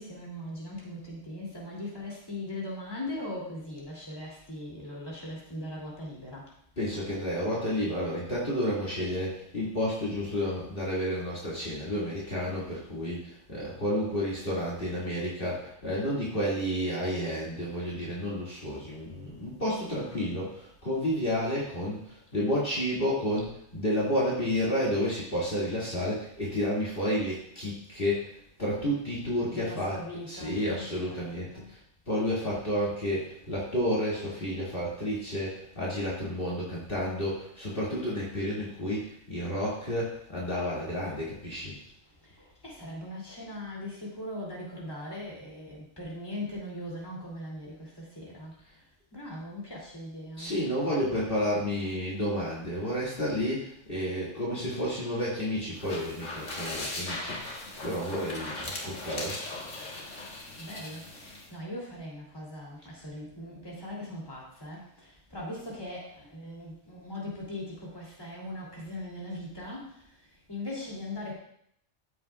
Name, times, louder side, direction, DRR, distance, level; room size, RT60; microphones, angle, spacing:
voice 1, 0.0-6.5 29.4-31.7 42.2-48.6 49.1-50.5 60.6-70.1 70.5-71.3, left 1 dB, 20° left, -4 dB, 2.8 m, -40 dB
voice 2, 6.8-31.8 32.1-41.8 50.4-59.4, equal, 45° left, -6 dB, 2.4 m, -31 dB
sound 1, 55.7-61.5, left 2 dB, 85° left, 1.8 m, -38 dB
14.0 x 7.5 x 2.4 m, 0.69 s
omnidirectional pair, 1.3 m